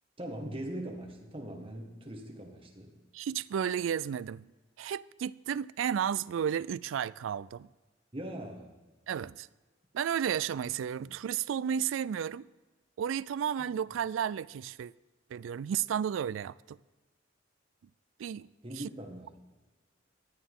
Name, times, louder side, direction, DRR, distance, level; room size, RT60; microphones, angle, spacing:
voice 1, 0.2-2.9 8.1-8.7 11.1-11.2 18.6-19.4, right 1 dB, 30° right, 1.7 m, -41 dB
voice 2, 3.1-4.5 4.8-7.7 9.1-9.5 9.9-12.5 13.0-14.9 15.3-16.8 18.2-18.5, right 8 dB, 85° right, 0.3 m, -33 dB
16.0 x 10.5 x 3.7 m
head